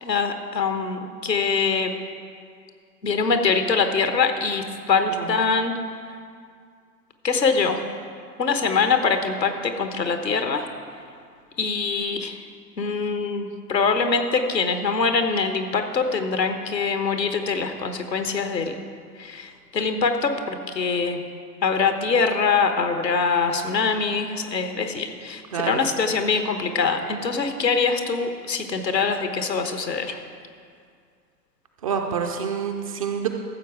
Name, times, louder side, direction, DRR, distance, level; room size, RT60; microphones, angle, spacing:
voice 1, 0.0-1.9 3.0-5.7 7.2-7.8 8.4-10.7 11.6-12.4 12.8-18.7 19.2-21.2 21.6-30.2, left 5 dB, 85° left, 7 dB, 1.2 m, -23 dB
voice 2, 31.8-33.3, right 7 dB, 25° right, 4 dB, 0.4 m, -27 dB
14.0 x 7.3 x 4.8 m, 2.2 s
figure-of-eight pair, 110°, 49 cm